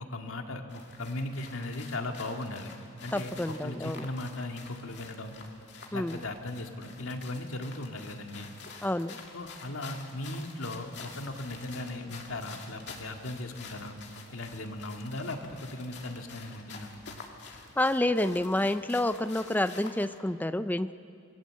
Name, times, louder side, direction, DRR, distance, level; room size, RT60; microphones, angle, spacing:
voice 1, 0.1-2.7 3.0-5.4 5.9-8.5 9.3-13.9 14.3-16.9, left 2 dB, 80° left, 4 dB, 2.1 m, -37 dB
sound 1, 0.7-20.2, left 4 dB, 55° left, 2.5 m, -48 dB
voice 2, 3.1-4.0 5.9-6.2 8.8-9.2 17.8-20.9, left 1 dB, 10° left, 12 dB, 0.5 m, -28 dB
27.0 x 20.5 x 7.6 m, 2.5 s
head